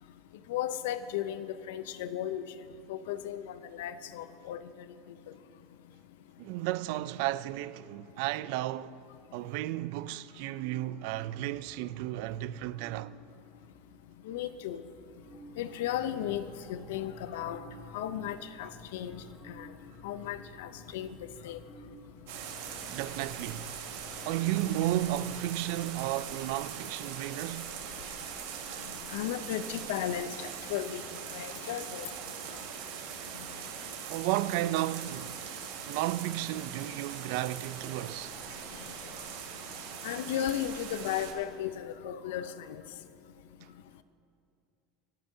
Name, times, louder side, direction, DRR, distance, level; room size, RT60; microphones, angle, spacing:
voice 1, 0.5-2.4 2.9-4.6 14.3-14.8 15.6-16.4 16.7-17.6 17.9-19.7 20.0-21.1 21.4-21.6 29.1-31.0 31.3-32.1 40.0-42.8, left 11 dB, 80° left, 0.5 m, -35 dB
voice 2, 6.4-9.0 9.3-13.1 22.9-23.8 24.2-27.8 34.1-35.4 35.8-38.4, right 15 dB, 55° right, 0.3 m, -33 dB
sound 1, 10.4-17.9 18.5-18.6 18.8-26.2, right 2 dB, 5° left, 1.3 m, -57 dB
sound 2, 14.8-25.9, left 1 dB, 25° left, 1.5 m, -54 dB
sound 3, 22.3-41.3, right 7 dB, 75° right, 1.6 m, -41 dB
27.0 x 9.0 x 2.7 m
supercardioid pair, 170°, 0 cm